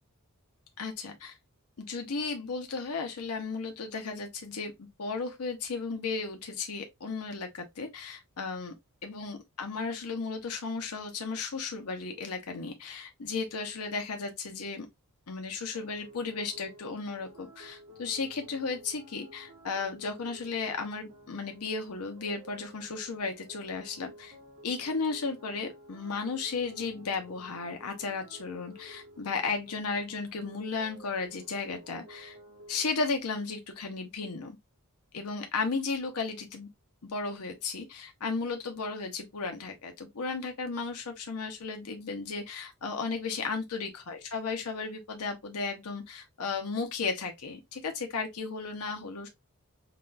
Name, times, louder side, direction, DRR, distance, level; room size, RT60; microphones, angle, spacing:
voice 1, 0.8-1.4 1.8-8.7 9.0-14.9 15.3-24.4 24.6-32.4 32.7-34.6 35.1-36.7 37.0-49.3, left 4 dB, 85° left, 0.8 m, -34 dB
sound 1, 15.7-32.9, equal, 85° right, 1.8 m, -53 dB
5.8 x 2.3 x 2.5 m
head